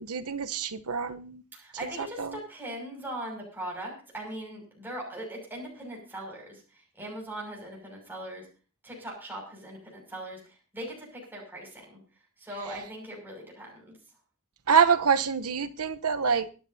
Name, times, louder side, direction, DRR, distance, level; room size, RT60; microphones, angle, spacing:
voice 1, 0.0-1.4 2.2-2.3 14.7-16.5, right 6 dB, 85° right, 0.9 m, -25 dB
voice 2, 1.5-8.5 8.8-12.0 12.4-13.9, right 1 dB, 10° right, 6.2 m, -40 dB
24.5 x 10.0 x 2.8 m
head